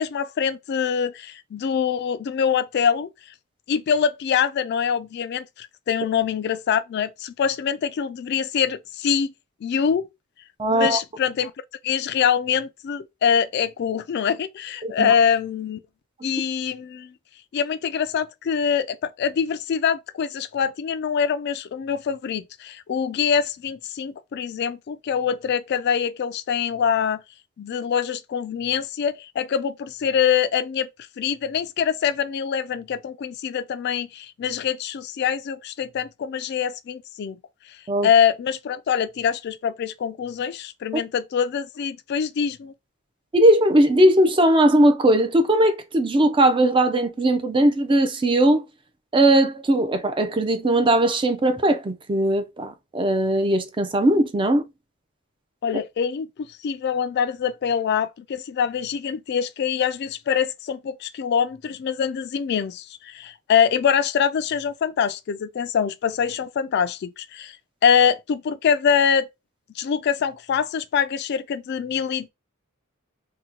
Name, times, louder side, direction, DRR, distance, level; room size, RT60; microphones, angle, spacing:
voice 1, 0.0-3.1 3.7-9.3 9.6-10.1 10.7-11.5 11.8-15.8 16.2-17.1 17.5-27.2 27.6-30.9 31.2-37.4 37.7-37.8 38.0-42.7 55.6-67.6 67.8-69.3 69.8-72.3, left 7 dB, 50° left, 0.3 m, -24 dB
voice 2, 10.6-11.0 14.8-15.1 37.9-38.1 43.3-48.6 49.1-54.6, right 1 dB, 25° right, 0.4 m, -19 dB
2.8 x 2.1 x 3.7 m
head